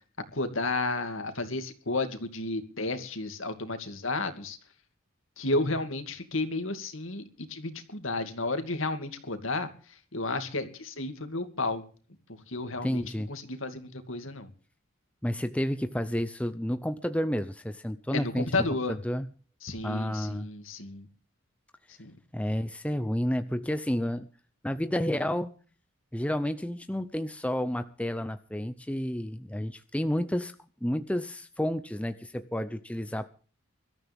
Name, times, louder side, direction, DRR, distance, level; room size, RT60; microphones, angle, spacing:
voice 1, 0.3-4.6 5.4-9.7 10.1-11.8 12.3-13.0 13.3-14.5 18.1-19.0 19.6-21.1 22.0-22.1, left 2 dB, 65° left, 8 dB, 2.5 m, -32 dB
voice 2, 12.8-13.3 15.2-19.3 19.8-20.5 22.3-24.3 24.6-25.5 26.1-30.5 30.8-33.3, equal, 5° left, 10 dB, 0.6 m, -30 dB
22.5 x 13.5 x 3.5 m, 0.40 s
head